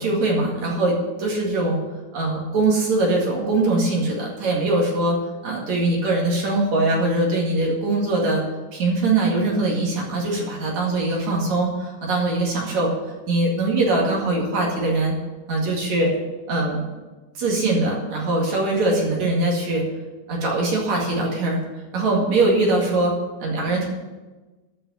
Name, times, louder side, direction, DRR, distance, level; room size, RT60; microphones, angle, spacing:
voice 1, 0.0-1.8 2.1-5.2 5.4-8.4 8.7-12.9 13.3-15.1 15.5-16.1 16.5-16.8 17.3-19.9 20.3-21.6 21.9-23.1 23.4-23.9, right 2 dB, 60° right, -3 dB, 3.3 m, -22 dB
13.0 x 5.6 x 8.4 m, 1.2 s
omnidirectional pair, 3.8 m